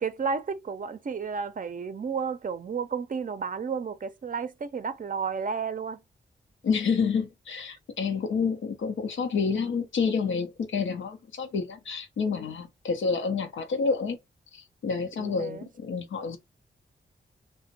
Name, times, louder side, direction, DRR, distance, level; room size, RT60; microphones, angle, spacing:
voice 1, 0.0-6.0 15.2-15.7, right 5 dB, 45° right, 0.5 m, -32 dB
voice 2, 6.6-14.2 14.5-16.4, left 5 dB, 85° left, 0.6 m, -29 dB
2.5 x 2.1 x 2.7 m
cardioid pair, 55°, 19 cm